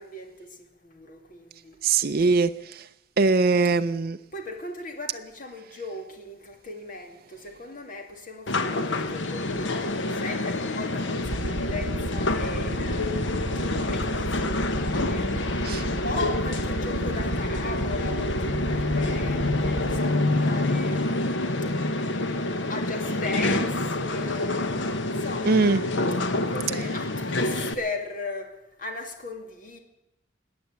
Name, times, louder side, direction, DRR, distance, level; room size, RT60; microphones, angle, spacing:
voice 1, 0.0-2.1 4.3-21.4 22.7-24.7 25.1-25.9 26.5-29.8, left 2 dB, 45° left, 2.4 m, -38 dB
voice 2, 1.8-2.9 3.2-4.2 15.7-15.8 25.5-25.8, right 3 dB, 50° right, 0.5 m, -22 dB
sound 1, 8.5-27.7, left 2 dB, 65° left, 1.0 m, -27 dB
sound 2, 11.2-20.0, right 2 dB, 85° right, 0.9 m, -33 dB
20.0 x 8.8 x 8.3 m
head